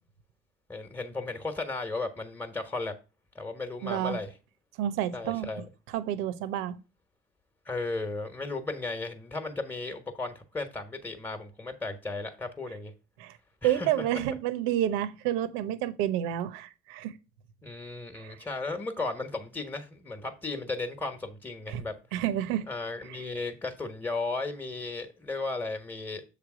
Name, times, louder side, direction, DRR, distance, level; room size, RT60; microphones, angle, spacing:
voice 1, 0.7-2.9 3.3-4.3 5.1-5.6 7.6-12.9 13.6-14.2 17.6-21.9 22.7-26.2, left 3 dB, 10° left, 1.2 m, -35 dB
voice 2, 3.8-4.2 4.8-5.5 5.9-6.8 13.2-13.3 13.6-17.1 18.1-18.4 21.7-21.8 22.1-22.7, right 12 dB, 75° right, 0.9 m, -29 dB
7.2 x 3.4 x 6.1 m
supercardioid pair, 100°, 21 cm